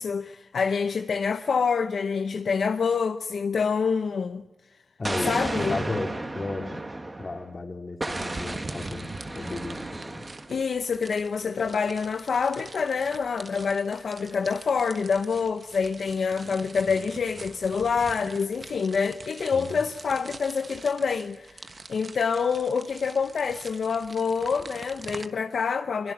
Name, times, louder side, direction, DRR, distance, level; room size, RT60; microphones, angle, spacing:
voice 1, 0.0-4.4 5.2-5.8 10.5-26.1, left 5 dB, 65° left, 0.8 m, -27 dB
voice 2, 5.0-6.8 7.2-10.2 19.5-19.8, left 3 dB, 35° left, 3.0 m, -34 dB
Explosion, 5.0-7.5 8.0-10.6, right 2 dB, 20° right, 1.6 m, -33 dB
sound 1, 8.1-25.3, right 3 dB, 40° right, 1.2 m, -44 dB
22.5 x 22.5 x 7.4 m
wide cardioid pair, 95°, 0 cm